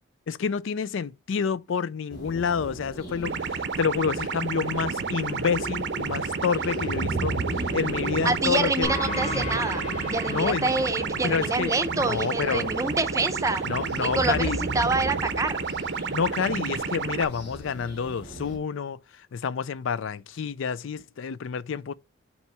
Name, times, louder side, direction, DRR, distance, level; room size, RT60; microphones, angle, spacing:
voice 1, 0.3-7.4 7.7-8.9 10.3-10.7 11.2-11.7 12.0-12.8 13.6-14.6 16.1-21.9, left 6 dB, 75° left, 0.4 m, -28 dB
sound 1, 2.1-18.6, right 2 dB, 55° left, 2.4 m, -36 dB
sound 2, 3.2-17.2, right 5 dB, 55° right, 0.6 m, -31 dB
voice 2, 8.2-13.6 14.0-15.6, right 3 dB, 15° right, 0.6 m, -27 dB
sound 3, 8.8-14.0, left 1 dB, 30° left, 2.6 m, -36 dB
7.1 x 4.2 x 4.7 m
head